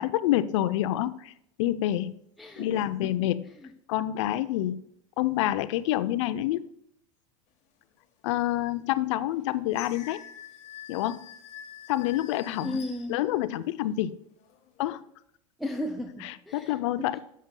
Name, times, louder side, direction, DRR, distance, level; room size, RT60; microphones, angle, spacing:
voice 1, 0.0-1.3 1.6-2.1 2.6-3.4 3.9-4.8 5.2-6.7 8.2-10.2 10.9-11.3 11.9-12.8 13.1-14.2 14.8-15.0 16.2-17.2, left 13 dB, 65° left, 15 dB, 0.5 m, -27 dB
voice 2, 2.4-3.1 3.6-3.7 12.6-13.2 15.6-17.2, left 1 dB, ahead, 2 dB, 0.5 m, -36 dB
sound 1, 8.3-8.4 9.0-13.8 14.3-14.9, left 9 dB, 45° left, 1.1 m, -47 dB
10.5 x 7.5 x 2.2 m, 0.76 s
hypercardioid pair, 95°, 17 cm